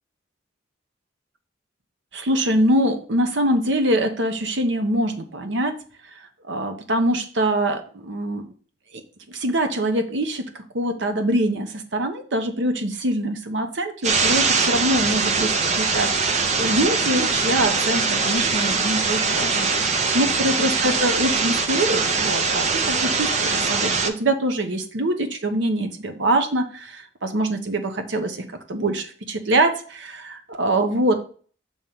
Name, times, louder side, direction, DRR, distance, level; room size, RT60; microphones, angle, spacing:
voice 1, 2.1-5.7 6.5-8.5 9.3-10.4 10.7-28.4 28.7-31.2, right 1 dB, 70° right, 6 dB, 0.9 m, -24 dB
sound 1, 14.0-24.1, right 4 dB, 35° right, 0.6 m, -22 dB
7.1 x 3.2 x 5.5 m, 0.43 s
head